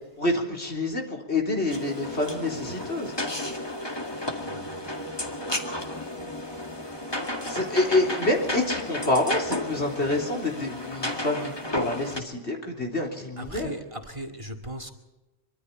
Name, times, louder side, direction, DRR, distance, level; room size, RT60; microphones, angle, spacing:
voice 1, 0.2-3.1 7.4-13.8, left 2 dB, 70° left, 1 dB, 4.1 m, -27 dB
sound 1, 1.7-12.2, left 1 dB, 20° left, 2.1 m, -33 dB
voice 2, 4.4-4.9 11.8-12.0 13.4-15.0, right 1 dB, 30° right, 6 dB, 2.1 m, -38 dB
24.5 x 24.5 x 4.4 m, 1.1 s
omnidirectional pair, 1.2 m